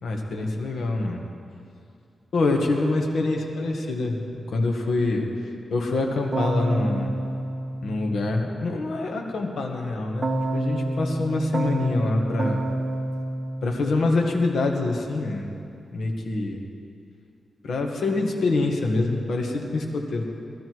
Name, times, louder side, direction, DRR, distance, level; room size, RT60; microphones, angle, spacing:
voice 1, 0.0-1.2 2.3-7.1 7.8-12.6 13.6-15.5 15.9-16.7 17.6-20.3, left 2 dB, 75° left, 1 dB, 1.8 m, -25 dB
Keyboard (musical), 6.3-8.6 10.2-14.5, right 1 dB, 35° right, 1.1 m, -29 dB
18.5 x 13.0 x 4.8 m, 2.5 s
wide cardioid pair, 120°, 0 cm